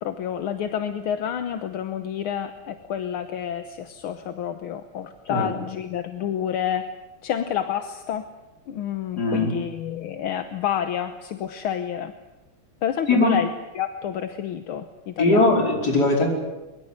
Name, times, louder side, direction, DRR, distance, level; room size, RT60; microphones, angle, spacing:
voice 1, 0.0-6.9 7.2-8.3 8.7-12.1 12.8-13.5 13.8-15.7, left 9 dB, 75° left, 9 dB, 1.9 m, -29 dB
voice 2, 9.2-9.6 13.1-13.4 15.2-16.3, left 2 dB, 45° left, 1 dB, 5.4 m, -20 dB
23.0 x 22.5 x 8.2 m, 1.1 s
omnidirectional pair, 2.4 m